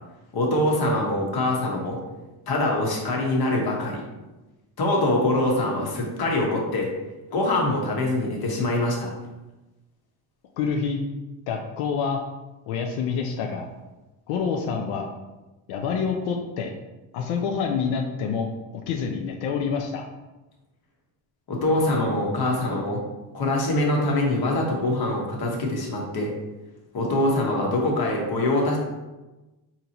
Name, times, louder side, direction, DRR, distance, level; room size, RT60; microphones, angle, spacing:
voice 1, 0.3-2.0 2.5-4.0 4.8-6.9 7.3-9.1 21.5-23.0 23.3-26.3 26.9-28.8, left 1 dB, 50° left, 0 dB, 1.1 m, -24 dB
voice 2, 10.6-11.0 11.5-12.2 12.7-13.7 14.3-15.1 15.7-16.7 17.1-18.5 18.7-20.0, left 6 dB, 90° left, 2 dB, 0.6 m, -27 dB
3.8 x 2.9 x 2.8 m, 1.1 s
cardioid pair, 100°, 48 cm